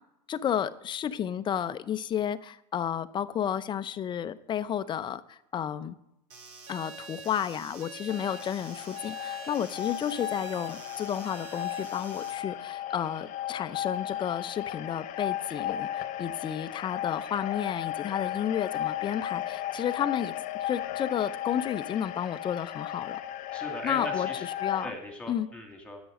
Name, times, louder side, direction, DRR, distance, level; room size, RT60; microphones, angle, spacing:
voice 1, 0.3-5.9 6.7-15.9 16.2-20.3 20.6-23.2 23.8-24.9 25.3-25.5, left 9 dB, 20° left, 13 dB, 0.6 m, -32 dB
sound 1, 6.3-12.3, right 4 dB, 75° right, 2.9 m, -46 dB
sound 2, 8.1-24.9, left 12 dB, 40° left, 1.1 m, -35 dB
voice 2, 23.5-24.4 24.8-26.0, equal, 5° left, 3 dB, 2.4 m, -38 dB
11.0 x 8.1 x 6.4 m, 0.84 s
hypercardioid pair, 115°, 21 cm